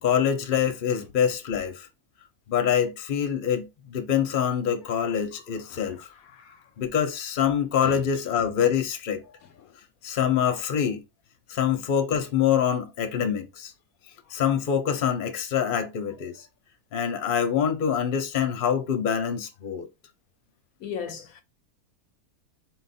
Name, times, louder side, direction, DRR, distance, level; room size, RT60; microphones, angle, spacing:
voice 1, 0.0-1.9 2.5-6.1 6.8-9.2 10.0-11.0 11.5-13.7 14.3-16.5 16.9-19.9, left 8 dB, 45° left, 0.8 m, -25 dB
voice 2, 20.8-21.4, left 7 dB, 75° left, 1.0 m, -36 dB
4.2 x 2.5 x 4.2 m
omnidirectional pair, 1.6 m